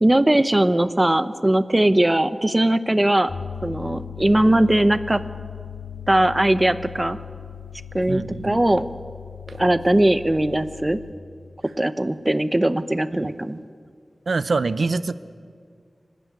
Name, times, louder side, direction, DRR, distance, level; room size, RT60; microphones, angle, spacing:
voice 1, 0.0-3.3 3.6-5.2 6.1-7.2 7.9-8.8 9.6-11.0 11.8-13.6, right 1 dB, 25° right, 13 dB, 0.9 m, -19 dB
sound 1, 3.3-11.1, left 8 dB, 75° left, 2.0 m, -38 dB
voice 2, 8.1-8.6 9.5-9.6 13.1-13.2 14.3-15.1, right 3 dB, 80° right, 15 dB, 0.6 m, -25 dB
25.0 x 12.5 x 9.5 m, 2.1 s
wide cardioid pair, 55°, 0 cm